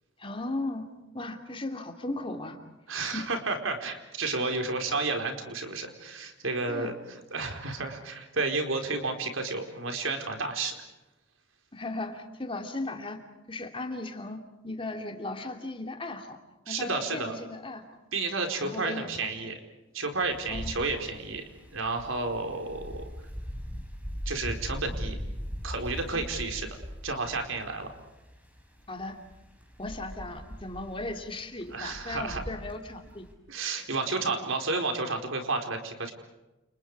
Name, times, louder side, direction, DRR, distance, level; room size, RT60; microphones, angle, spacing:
voice 1, 0.2-0.8 1.1-2.6 3.1-3.2 6.7-6.9 11.7-13.2 13.5-14.4 14.6-16.4 16.7-17.8 18.6-19.3 20.5-20.7 26.1-26.2 28.9-29.1 29.8-33.3, left 2 dB, 25° left, 4 dB, 3.0 m, -36 dB
voice 2, 2.9-6.9 7.3-10.7 16.7-17.3 18.1-19.6 19.9-21.4 21.7-23.1 24.3-25.2 25.6-26.7 27.0-27.9 31.7-32.4 33.5-36.1, right 3 dB, 85° right, 4 dB, 4.5 m, -31 dB
Wind, 20.2-33.3, equal, 5° right, 5.2 m, -40 dB
30.0 x 29.5 x 4.9 m, 1.0 s
head